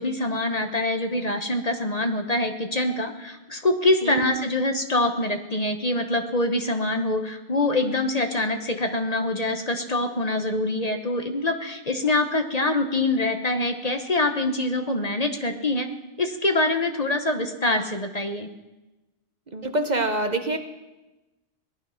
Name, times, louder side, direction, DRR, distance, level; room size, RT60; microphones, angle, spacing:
voice 1, 0.0-15.9 16.2-18.5, left 2 dB, 40° left, 5 dB, 1.1 m, -25 dB
voice 2, 19.5-20.6, right 2 dB, 45° right, 6 dB, 1.1 m, -25 dB
18.5 x 12.0 x 5.8 m, 1.0 s
omnidirectional pair, 1.1 m